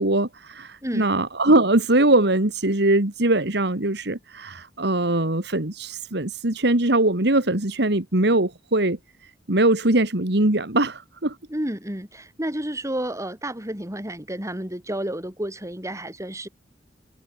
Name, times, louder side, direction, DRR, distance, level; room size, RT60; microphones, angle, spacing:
voice 1, 0.0-9.0 9.5-11.4, right 2 dB, 65° right, 2.5 m, -21 dB
voice 2, 11.5-16.5, right 1 dB, 15° right, 6.3 m, -31 dB
head